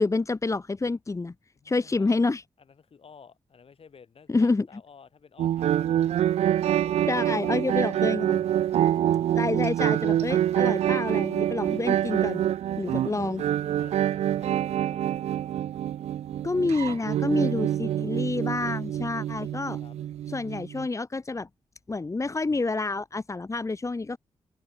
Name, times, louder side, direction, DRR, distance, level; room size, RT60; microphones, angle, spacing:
voice 1, 0.0-1.3 1.6-2.4 4.3-4.7 7.1-8.4 9.3-12.4 12.8-13.4 16.4-19.8 20.3-21.5 21.9-24.2, left 3 dB, 30° left, 1.2 m, -28 dB
voice 2, 1.5-2.1 2.6-8.0 8.9-9.1 11.5-11.8 12.7-15.1 19.8-20.0, left 6 dB, 60° left, 6.0 m, -53 dB
sound 1, 5.4-20.9, right 11 dB, 75° right, 0.4 m, -26 dB
cardioid pair, 60°, 11 cm